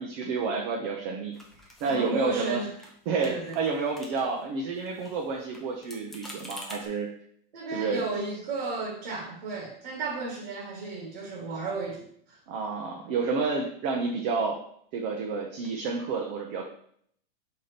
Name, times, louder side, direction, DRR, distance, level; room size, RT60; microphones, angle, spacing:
voice 1, 0.0-1.3 1.8-2.6 3.1-7.1 7.7-8.0 12.5-14.6 14.9-16.6, right 4 dB, 30° right, 0 dB, 0.8 m, -29 dB
sound 1, 1.3-2.5 2.8-2.9 3.2-4.5 4.8-6.9, equal, ahead, 0.5 m, -46 dB
voice 2, 1.8-2.7 3.2-3.6 7.5-12.4, right 3 dB, 55° right, 0 dB, 1.7 m, -34 dB
5.6 x 4.3 x 5.1 m, 0.65 s
supercardioid pair, 165°, 29 cm